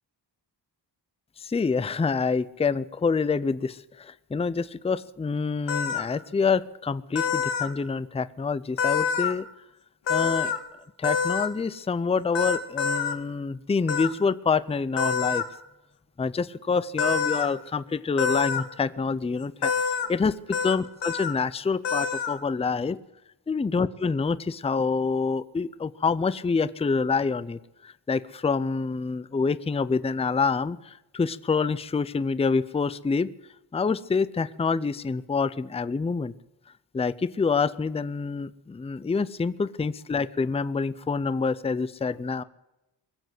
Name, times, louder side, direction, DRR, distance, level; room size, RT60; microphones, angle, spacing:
voice 1, 1.4-9.5 10.1-10.5 11.0-15.4 16.2-19.7 20.1-23.0 23.5-33.3 33.7-36.3 36.9-42.4, left 5 dB, 15° left, 16 dB, 0.5 m, -27 dB
sound 1, 5.7-6.0 7.1-7.7 8.8-9.3 10.1-10.6 11.0-11.5 12.3-13.1 13.9-14.1 15.0-15.4 17.0-17.5 18.2-18.6 19.6-20.1 20.5-20.7 21.0-21.3 21.8-22.4, left 6 dB, 75° left, 1.8 m, -26 dB
22.5 x 7.9 x 7.7 m, 0.95 s
wide cardioid pair, 130°, 44 cm